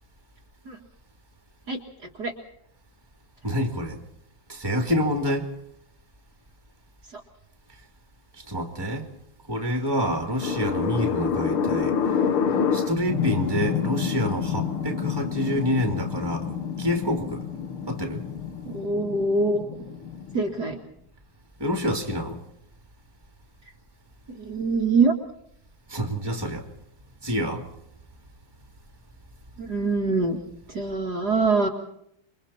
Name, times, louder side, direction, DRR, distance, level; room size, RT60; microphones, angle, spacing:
voice 1, 3.4-4.0 4.5-5.5 8.5-9.0 9.5-11.9 12.7-16.5 16.8-17.4 17.9-18.2 21.6-22.4 25.9-26.6 27.2-27.6, equal, 10° right, 2.7 m, -27 dB
sound 1, 10.4-20.8, left 7 dB, 80° left, 2.3 m, -28 dB
voice 2, 18.7-19.7 20.3-20.8 24.3-25.1 29.6-30.4 30.7-31.7, right 3 dB, 50° right, 2.4 m, -24 dB
28.0 x 24.0 x 4.3 m
omnidirectional pair, 2.4 m